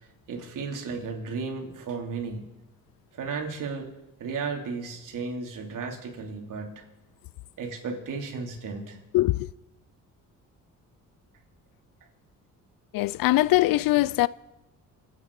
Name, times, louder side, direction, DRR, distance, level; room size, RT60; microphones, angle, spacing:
voice 1, 0.3-2.5 3.1-3.9 4.2-6.8 7.6-9.0, right 4 dB, 65° right, 3.4 m, -34 dB
voice 2, 9.1-9.5 12.9-14.3, left 17 dB, 80° left, 0.5 m, -22 dB
28.0 x 9.5 x 4.9 m
cardioid pair, 85°, 34 cm